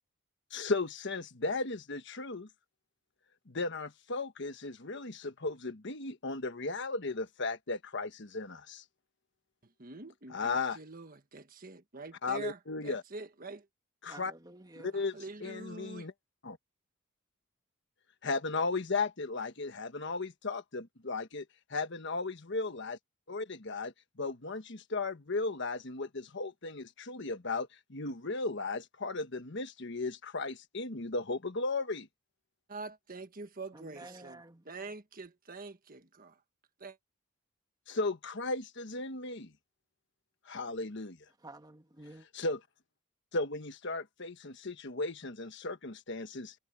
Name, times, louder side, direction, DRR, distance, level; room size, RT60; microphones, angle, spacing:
voice 1, 0.5-2.5 3.5-8.8 10.3-10.8 12.2-13.0 14.0-14.3 14.8-15.1 15.4-16.1 16.4-16.6 18.2-21.4 21.7-23.0 23.3-23.9 24.2-32.1 37.9-39.5 40.5-41.2 42.3-42.6 43.3-46.5, left 3 dB, 60° left, 1.3 m, -35 dB
voice 2, 9.6-13.7 14.9-16.1 32.7-36.4 36.8-37.0, right 3 dB, 45° right, 1.5 m, -46 dB
voice 3, 14.0-15.0 33.7-34.7 41.4-42.3, right 2 dB, 20° right, 1.7 m, -51 dB
head